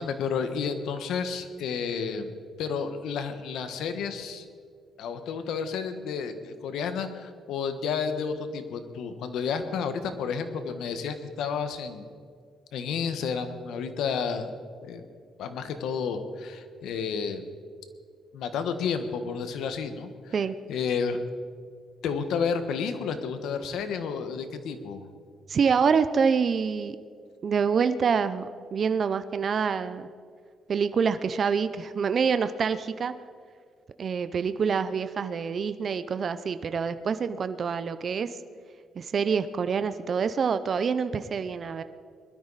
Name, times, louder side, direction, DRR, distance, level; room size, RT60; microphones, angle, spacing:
voice 1, 0.0-2.3 2.6-4.5 5.0-12.1 12.7-14.5 14.8-15.0 15.4-17.4 18.3-20.3 20.7-21.2 22.0-25.1, left 6 dB, 80° left, 9 dB, 1.4 m, -31 dB
voice 2, 25.5-27.0 27.4-30.1 30.7-33.1 34.0-38.3 39.0-41.8, right 6 dB, 50° right, 11 dB, 0.6 m, -26 dB
20.5 x 13.0 x 4.1 m, 2.1 s
cardioid pair, 90°, 0 cm